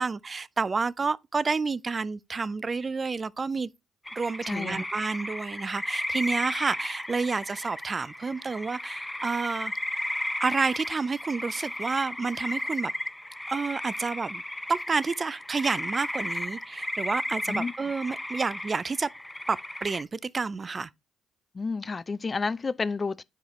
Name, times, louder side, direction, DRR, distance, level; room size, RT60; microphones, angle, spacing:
voice 1, 0.0-3.7 4.2-9.7 10.4-12.9 13.5-14.4 14.7-19.1 19.5-20.9, right 4 dB, 35° right, 0.4 m, -29 dB
sound 1, 4.1-20.0, left 1 dB, 10° left, 0.8 m, -34 dB
voice 2, 4.4-4.8 17.5-17.7 21.5-23.2, left 4 dB, 35° left, 0.5 m, -30 dB
9.4 x 5.0 x 3.0 m
supercardioid pair, 60°, 0 cm